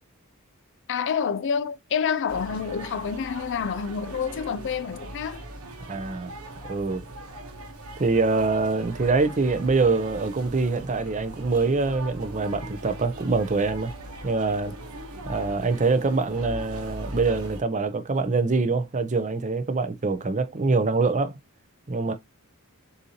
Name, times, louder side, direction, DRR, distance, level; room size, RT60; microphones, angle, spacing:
voice 1, 0.9-5.4, left 7 dB, 55° left, 0.4 m, -28 dB
sound 1, 2.3-17.6, right 1 dB, 75° right, 1.1 m, -40 dB
voice 2, 5.9-6.3 6.6-7.0 8.0-13.9 14.2-14.8 15.2-21.4 21.9-22.1, right 3 dB, 35° right, 0.6 m, -24 dB
6.8 x 2.7 x 2.8 m
head